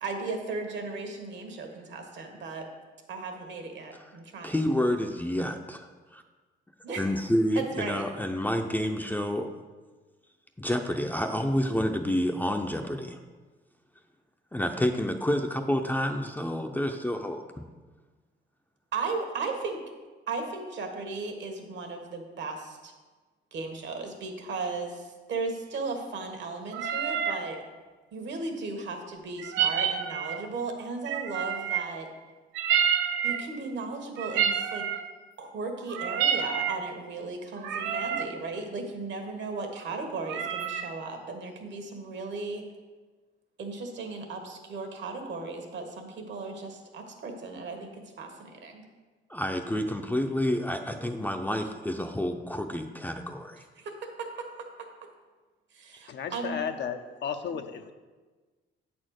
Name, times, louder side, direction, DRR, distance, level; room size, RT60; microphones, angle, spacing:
voice 1, 0.0-2.7 3.1-4.6 6.8-7.0 7.5-8.0 18.9-19.8 20.3-22.9 23.5-27.6 28.1-32.1 33.2-34.9 35.4-42.6 43.6-48.8 53.8-54.5 54.8-54.9 55.7-56.6, right 3 dB, 65° right, 4 dB, 1.5 m, -36 dB
voice 2, 4.4-6.2 7.0-9.5 10.6-13.2 14.5-17.4 49.3-53.6, left 1 dB, 10° left, 4 dB, 0.6 m, -29 dB
sound 1, 26.7-27.4 29.4-30.5 31.1-32.0 32.5-33.5 34.2-35.1 35.8-36.8 37.5-38.3 40.2-40.9, right 8 dB, 90° right, 0.6 m, -28 dB
voice 3, 56.1-57.9, left 7 dB, 65° left, 7 dB, 0.7 m, -34 dB
8.5 x 4.3 x 6.4 m, 1.3 s
cardioid pair, 90°, 20 cm